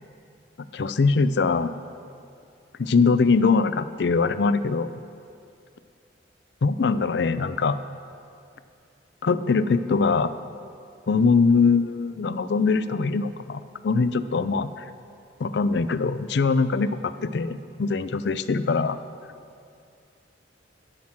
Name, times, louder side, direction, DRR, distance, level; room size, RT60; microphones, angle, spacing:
voice 1, 0.7-1.7 2.8-4.9 6.6-7.8 9.2-10.3 11.1-14.9 15.4-19.0, left 4 dB, 65° left, 13 dB, 0.4 m, -22 dB
14.5 x 6.0 x 7.3 m, 2.4 s
head